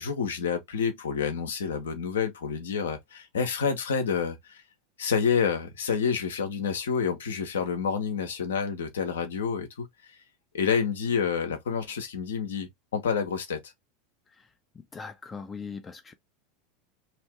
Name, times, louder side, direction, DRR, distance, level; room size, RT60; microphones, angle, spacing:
voice 1, 0.0-4.6 5.0-9.9 10.5-13.6, left 6 dB, 70° left, 0.8 m, -28 dB
voice 2, 14.9-16.1, left 5 dB, 20° left, 0.6 m, -39 dB
2.9 x 2.7 x 3.4 m
figure-of-eight pair, 80°, 0 cm